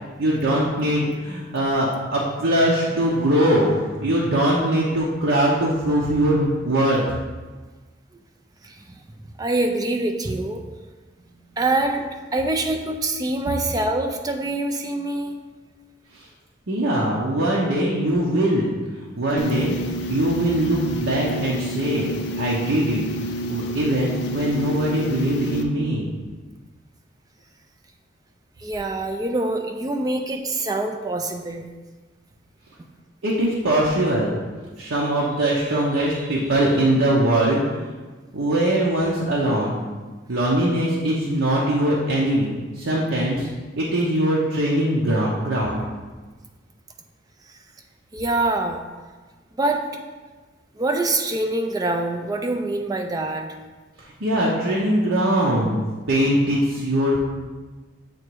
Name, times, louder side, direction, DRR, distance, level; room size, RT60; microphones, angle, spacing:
voice 1, 0.2-7.0 16.1-16.3 16.7-19.8 20.1-23.0 23.5-26.1 33.2-34.4 34.8-37.8 38.3-39.8 40.3-43.5 43.8-45.8 54.0-57.2, right 1 dB, 75° right, -5 dB, 0.8 m, -21 dB
voice 2, 8.6-9.0 9.4-10.6 11.6-15.4 28.6-31.7 32.8-32.9 48.1-48.8 49.6-49.8 50.7-53.5, right 2 dB, 20° right, 3 dB, 0.4 m, -25 dB
sound 1, 19.4-25.6, right 1 dB, 55° left, 0.5 m, -29 dB
7.5 x 2.9 x 4.6 m, 1.3 s
head